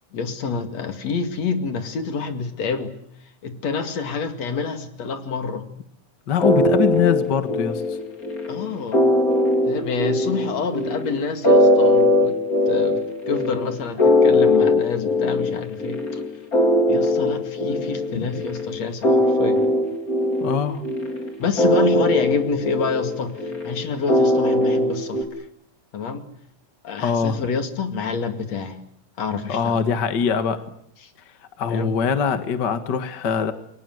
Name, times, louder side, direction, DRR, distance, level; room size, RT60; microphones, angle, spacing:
voice 1, 0.1-2.9 3.4-5.7 8.5-9.0 9.7-12.4 12.7-13.0 13.3-16.2 16.9-19.6 21.4-25.5 25.9-26.2 26.8-28.8 29.2-29.8 31.7-31.9, left 5 dB, 60° left, 8 dB, 3.4 m, -27 dB
voice 2, 6.3-8.0 18.1-18.4 20.4-20.8 27.0-27.4 29.5-30.6 31.6-33.5, left 7 dB, 45° left, 10 dB, 1.7 m, -23 dB
sound 1, 6.4-25.2, left 1 dB, 25° left, 4.0 m, -20 dB
29.0 x 23.0 x 7.9 m, 0.70 s
omnidirectional pair, 3.5 m